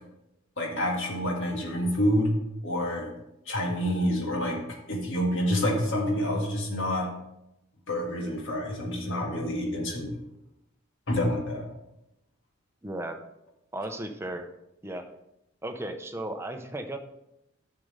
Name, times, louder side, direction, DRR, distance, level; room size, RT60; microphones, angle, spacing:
voice 1, 0.6-2.3 2.6-3.1 3.5-4.6 4.9-7.1 7.9-10.1 11.1-11.7, equal, 65° left, 0 dB, 1.9 m, -27 dB
voice 2, 12.8-13.2 13.7-14.5 14.8-15.1 15.6-17.0, right 1 dB, 10° right, 5 dB, 0.7 m, -35 dB
11.0 x 6.5 x 3.3 m, 0.86 s
head